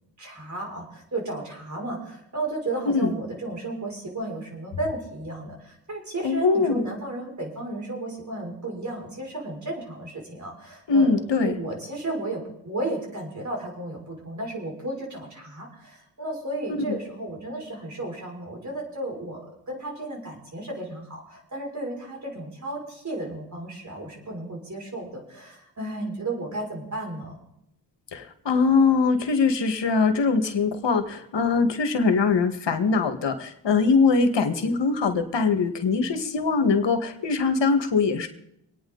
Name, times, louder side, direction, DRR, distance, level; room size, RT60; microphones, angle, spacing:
voice 1, 0.2-27.3, right 2 dB, 40° right, -1 dB, 6.1 m, -34 dB
voice 2, 6.2-6.8 10.9-11.6 16.9-17.0 28.1-38.3, left 4 dB, 70° left, 7 dB, 1.7 m, -22 dB
25.0 x 9.4 x 4.0 m, 0.79 s
cardioid pair, 70°, 45 cm